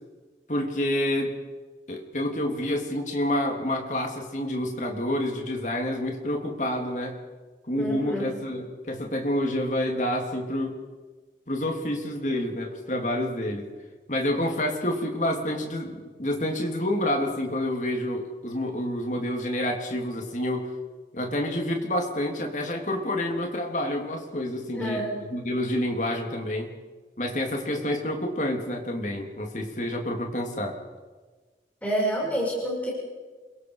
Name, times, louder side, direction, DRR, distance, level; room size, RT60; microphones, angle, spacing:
voice 1, 0.5-1.4 1.9-7.2 7.7-10.8 11.5-13.6 14.1-20.7 21.1-26.7 27.2-30.8, left 1 dB, 45° left, 2 dB, 3.4 m, -28 dB
voice 2, 7.8-8.3 24.7-25.2 31.8-32.9, equal, 10° left, -4 dB, 6.0 m, -28 dB
29.0 x 23.0 x 5.0 m, 1.3 s
head